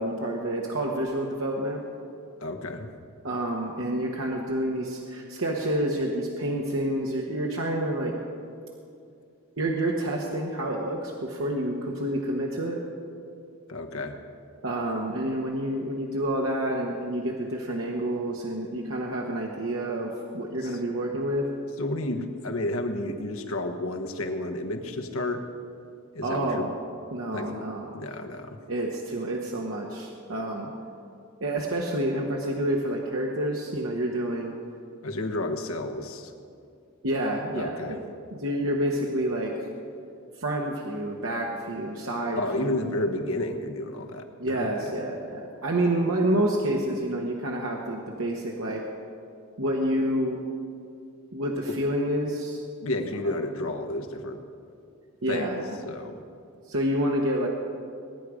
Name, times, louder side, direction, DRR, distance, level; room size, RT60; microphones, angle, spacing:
voice 1, 0.0-1.8 3.2-8.1 9.6-12.8 14.6-21.5 26.2-26.7 27.1-27.9 28.7-30.7 31.4-34.5 37.0-38.0 38.3-39.5 40.4-42.7 44.4-48.8 49.6-50.4 51.3-52.6 55.2-55.8 56.7-57.5, right 1 dB, 75° right, -1 dB, 1.3 m, -28 dB
voice 2, 2.4-2.9 13.7-14.2 20.6-20.7 21.8-25.4 26.1-26.7 27.3-27.6 27.9-28.6 35.0-36.3 37.5-38.0 42.4-44.9 51.7-51.8 52.8-54.4 55.3-55.5 55.8-56.2, left 1 dB, 85° left, 5 dB, 1.3 m, -31 dB
20.5 x 9.8 x 5.0 m, 2.4 s
head